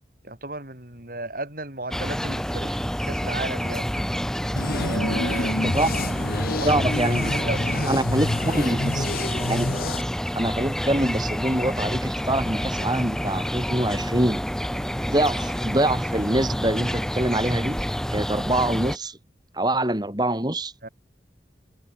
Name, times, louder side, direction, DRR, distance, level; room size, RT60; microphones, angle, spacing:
voice 1, 0.2-2.8 3.1-3.9 4.7-5.8 6.4-6.8 7.3-7.9 8.9-9.0 20.8-20.9, right 2 dB, 55° right, 6.1 m, -34 dB
sound 1, 1.9-19.0, equal, 5° left, 5.3 m, -28 dB
sound 2, 4.6-10.0, left 2 dB, 55° left, 1.8 m, -28 dB
voice 2, 6.6-7.3 7.9-9.0 9.5-9.7 10.3-14.4 15.1-17.8 18.1-19.2 19.5-20.7, right 1 dB, 25° right, 4.2 m, -24 dB
head